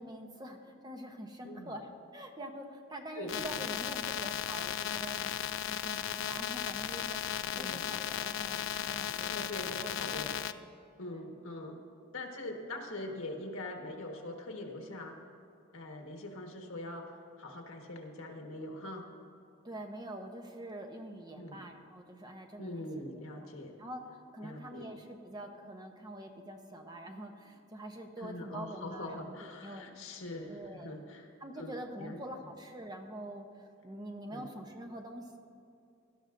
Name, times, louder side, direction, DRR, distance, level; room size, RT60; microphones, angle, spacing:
voice 1, 0.0-9.3 9.6-9.9 10.3-10.6 11.1-11.2 19.6-22.9 23.4-23.5 23.8-29.9 30.5-31.0 31.4-35.4, right 1 dB, 20° right, 3 dB, 0.8 m, -45 dB
voice 2, 1.4-1.7 3.2-3.4 7.5-7.8 9.3-10.3 11.0-11.8 12.1-15.2 15.7-19.1 21.4-21.6 22.6-23.7 24.4-24.9 28.2-31.3 31.6-31.7 32.0-32.2 34.3-34.5, left 1 dB, 75° left, 2 dB, 1.5 m, -43 dB
sound 1, 3.3-10.5, left 10 dB, 60° left, 0.3 m, -36 dB
18.5 x 12.0 x 2.6 m, 2.6 s
head